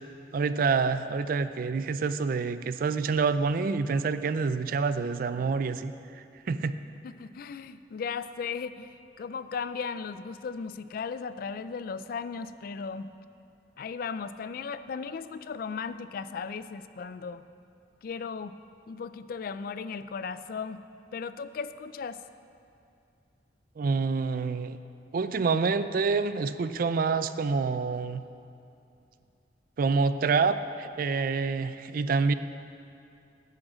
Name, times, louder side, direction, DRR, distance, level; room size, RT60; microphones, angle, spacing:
voice 1, 0.3-5.9 6.5-6.8 23.8-24.8 25.1-28.2 29.8-32.3, right 4 dB, 50° right, 12 dB, 0.3 m, -27 dB
voice 2, 7.0-13.1 13.8-17.4 18.0-18.5 18.9-20.8 21.1-22.2, left 5 dB, 50° left, 13 dB, 0.3 m, -36 dB
9.8 x 6.2 x 7.4 m, 2.6 s
head